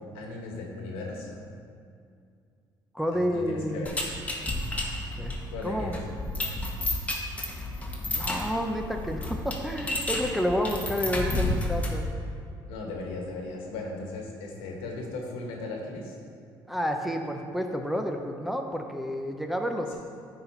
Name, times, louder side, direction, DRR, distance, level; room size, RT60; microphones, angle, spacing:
voice 1, 0.1-1.4 3.1-3.9 5.5-5.9 12.7-16.2, left 2 dB, 90° left, 0 dB, 1.3 m, -37 dB
voice 2, 2.9-3.9 5.2-6.0 8.1-12.1 16.7-19.9, equal, ahead, 3 dB, 0.6 m, -30 dB
sound 1, 3.8-12.1, left 1 dB, 15° left, 1.1 m, -31 dB
9.8 x 4.1 x 4.5 m, 2.4 s
cardioid pair, 100°, 9 cm